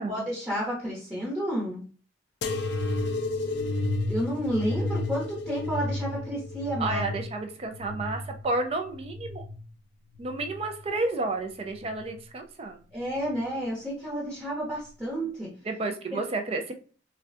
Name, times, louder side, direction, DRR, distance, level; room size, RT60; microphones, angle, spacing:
voice 1, 0.0-1.8 4.1-7.0 12.9-15.5, equal, 15° right, -6 dB, 0.9 m, -31 dB
sound 1, 2.4-9.6 10.1-10.9 11.7-12.2 13.2-13.3, left 2 dB, 65° left, 0.4 m, -32 dB
voice 2, 6.8-9.4 10.2-12.8 15.6-16.7, right 2 dB, 35° right, 5 dB, 0.4 m, -31 dB
3.5 x 2.2 x 2.5 m, 0.40 s
head